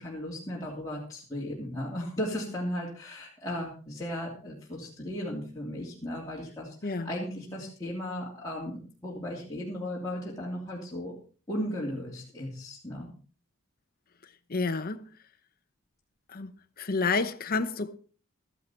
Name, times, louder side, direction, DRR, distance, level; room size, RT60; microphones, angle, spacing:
voice 1, 0.0-11.1 11.5-13.1, equal, 15° left, 3.0 m, -36 dB
voice 2, 14.5-15.0 16.3-16.5 16.8-18.0, left 4 dB, 45° left, 0.9 m, -29 dB
14.0 x 11.5 x 4.4 m
head